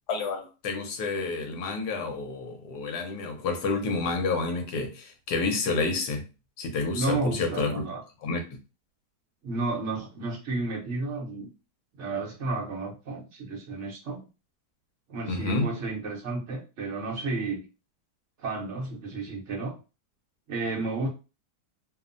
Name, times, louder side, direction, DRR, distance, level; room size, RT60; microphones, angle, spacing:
voice 1, 0.1-6.2 6.6-7.8 8.2-8.4 15.3-15.7, left 3 dB, 75° left, 1.2 m, -29 dB
voice 2, 6.9-8.0 9.4-11.5 11.9-14.2 15.1-17.6 18.4-19.7 20.5-21.1, right 3 dB, 55° right, 0.8 m, -32 dB
2.9 x 2.1 x 2.5 m
omnidirectional pair, 1.8 m